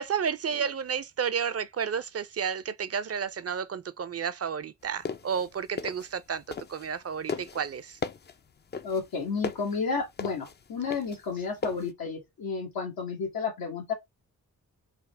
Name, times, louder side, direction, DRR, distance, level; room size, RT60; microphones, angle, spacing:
voice 1, 0.0-6.4 6.7-8.0, right 7 dB, 45° right, 0.5 m, -31 dB
sound 1, 4.9-7.0 7.3-11.9, left 5 dB, 30° left, 0.4 m, -36 dB
voice 2, 8.8-13.9, left 5 dB, 90° left, 1.2 m, -32 dB
3.5 x 2.1 x 3.2 m
cardioid pair, 50°, 35 cm